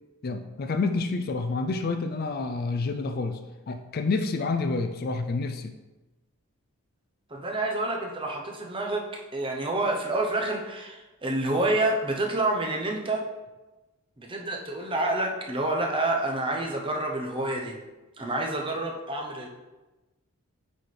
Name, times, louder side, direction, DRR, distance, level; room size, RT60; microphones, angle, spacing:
voice 1, 0.2-3.4 3.7-5.7, left 3 dB, 45° left, 7 dB, 0.4 m, -28 dB
voice 2, 7.3-13.3 14.2-17.8 18.2-19.5, right 2 dB, 25° right, 1 dB, 0.8 m, -28 dB
8.8 x 4.2 x 3.3 m, 1.1 s
head